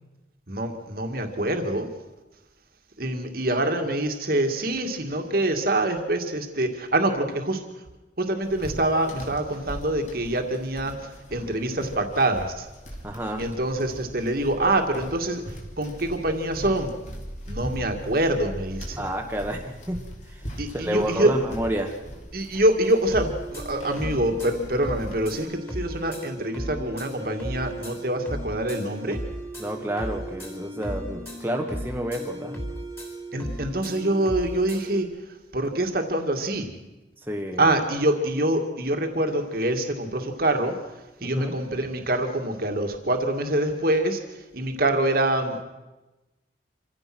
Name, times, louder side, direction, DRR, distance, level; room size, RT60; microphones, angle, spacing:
voice 1, 0.5-1.9 3.0-7.6 8.2-12.7 13.4-16.9 17.5-19.0 20.6-21.3 22.3-29.2 33.3-35.1 35.5-36.7 37.6-40.8 41.2-44.2 44.5-45.6, right 1 dB, 55° right, 5 dB, 2.1 m, -25 dB
footsteps on wood with pant legs rubbing, 8.4-25.4, equal, 40° left, 3.3 m, -40 dB
voice 2, 13.0-13.5 19.0-20.0 20.3-20.4 20.7-22.0 29.6-32.7 37.2-37.7 41.2-41.6, equal, 10° right, 1 dB, 1.5 m, -30 dB
sound 1, 22.8-35.0, right 1 dB, 10° left, 3.5 m, -36 dB
26.5 x 16.0 x 6.1 m, 1.1 s
head